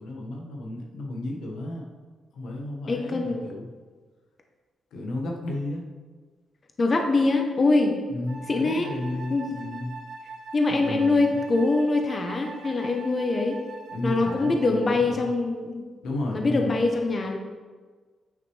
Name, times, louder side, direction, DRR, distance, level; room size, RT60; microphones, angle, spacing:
voice 1, 0.0-1.9 2.3-3.7 4.9-5.9 8.1-10.0 10.7-11.4 13.9-15.2 16.0-16.8, left 1 dB, 90° left, 0 dB, 1.3 m, -33 dB
voice 2, 2.9-3.4 6.8-8.0 8.5-8.9 9.3-9.5 10.5-13.6 14.0-15.8 16.3-17.4, left 3 dB, 25° left, 3 dB, 0.6 m, -23 dB
Wind instrument woodwind instrument, 8.3-15.0, right 3 dB, 90° right, 1.3 m, -42 dB
8.9 x 6.2 x 3.1 m, 1.4 s
wide cardioid pair, 180°, 0 cm